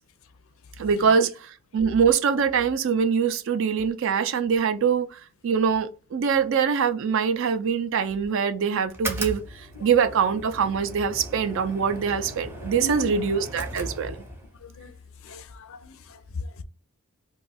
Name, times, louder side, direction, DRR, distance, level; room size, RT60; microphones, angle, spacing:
voice 1, 0.8-9.4 9.8-14.2, right 6 dB, 60° right, 0.4 m, -23 dB
sound 1, 8.9-14.5, right 1 dB, 10° right, 0.5 m, -37 dB
voice 2, 12.7-13.1 14.0-14.1 14.6-14.9 15.2-16.6, left 2 dB, 65° left, 0.4 m, -37 dB
2.6 x 2.3 x 4.0 m
head